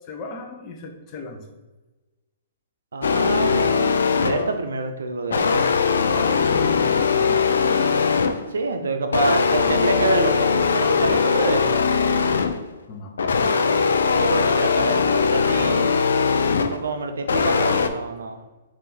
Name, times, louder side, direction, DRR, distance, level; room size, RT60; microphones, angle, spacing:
voice 1, 0.1-1.4 6.0-7.9 12.9-13.5, left 3 dB, 35° left, 2 dB, 0.7 m, -35 dB
voice 2, 2.9-3.9 4.2-5.7 7.9-8.1 8.5-11.8 14.1-16.0 16.7-18.4, right 3 dB, 80° right, 6 dB, 0.5 m, -26 dB
sound 1, 3.0-4.6 5.3-8.6 9.1-12.7 13.2-16.8 17.3-17.9, left 5 dB, 75° left, 0.3 m, -20 dB
3.7 x 2.6 x 4.1 m, 1.2 s
hypercardioid pair, 130°, 0 cm